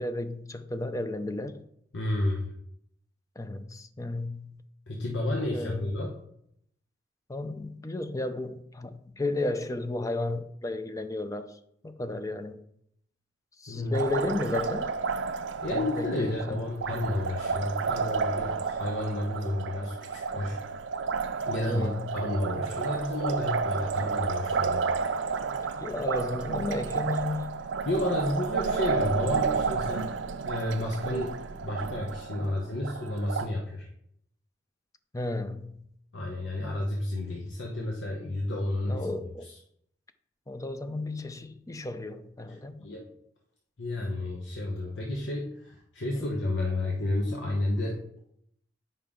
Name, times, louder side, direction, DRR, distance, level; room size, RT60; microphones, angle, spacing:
voice 1, 0.0-1.6 3.4-4.6 5.5-5.9 7.3-12.6 13.6-14.9 15.7-16.6 21.7-22.3 25.8-27.6 31.0-31.2 35.1-35.8 38.9-39.5 40.5-42.9 46.1-46.3, left 2 dB, 20° left, 10 dB, 0.5 m, -33 dB
voice 2, 1.9-2.5 4.9-6.1 13.7-14.0 15.6-20.6 21.5-24.9 27.8-30.1 30.4-31.3 31.6-33.9 36.1-39.1 39.4-39.6 42.5-43.1 43.8-48.0, left 1 dB, 90° left, 0 dB, 1.0 m, -31 dB
Liquid, 13.9-33.5, right 5 dB, 90° right, 0.5 m, -31 dB
8.7 x 5.6 x 3.7 m, 0.74 s
head